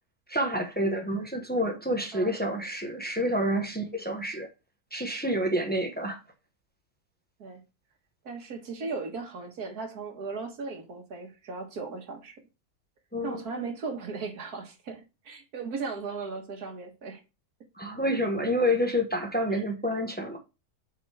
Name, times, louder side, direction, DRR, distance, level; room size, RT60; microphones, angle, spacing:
voice 1, 0.3-4.5 4.9-6.2 13.1-13.4 17.8-20.4, equal, 5° left, 0.9 m, -28 dB
voice 2, 8.3-12.4 13.2-17.2 19.5-19.6, right 4 dB, 80° right, 1.9 m, -37 dB
7.5 x 4.7 x 3.4 m
omnidirectional pair, 1.6 m